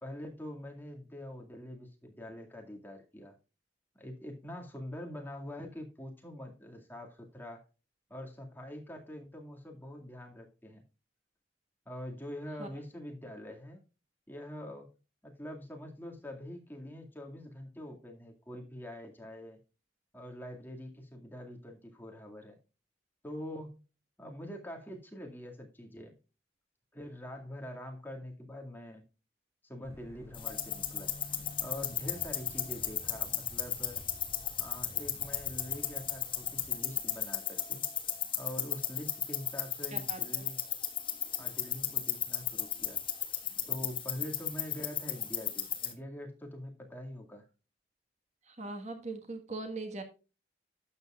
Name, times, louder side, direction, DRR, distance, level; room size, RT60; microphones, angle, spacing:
voice 1, 0.0-3.4 4.0-7.6 8.1-10.8 11.9-13.8 14.3-14.9 15.2-19.6 20.1-22.6 23.2-23.8 24.2-26.2 26.9-29.0 29.6-31.1 31.6-34.0 34.6-37.8 38.4-40.6 41.4-43.0 43.7-47.5, left 1 dB, 10° left, 1 dB, 2.1 m, -44 dB
sound 1, 29.8-36.7, left 1 dB, 15° right, 3.6 m, -51 dB
sound 2, 30.3-45.9, left 9 dB, 30° left, 1.6 m, -35 dB
voice 2, 48.5-50.0, right 2 dB, 40° right, 6 dB, 1.6 m, -40 dB
12.0 x 8.3 x 2.4 m, 0.32 s
head